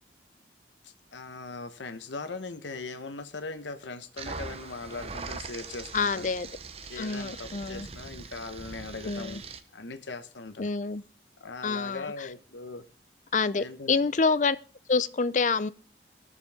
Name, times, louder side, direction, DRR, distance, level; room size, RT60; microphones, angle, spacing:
voice 1, 0.8-6.3 6.9-9.4 9.7-10.7 11.4-12.8 13.6-14.0, left 3 dB, 90° left, 1.1 m, -40 dB
sound 1, 4.2-9.6, right 4 dB, 35° right, 0.7 m, -41 dB
voice 2, 5.9-6.5 7.0-7.9 9.1-9.4 10.6-11.0 11.6-12.3 13.3-14.6 14.9-15.7, left 4 dB, 40° left, 0.4 m, -27 dB
19.0 x 6.9 x 3.5 m
head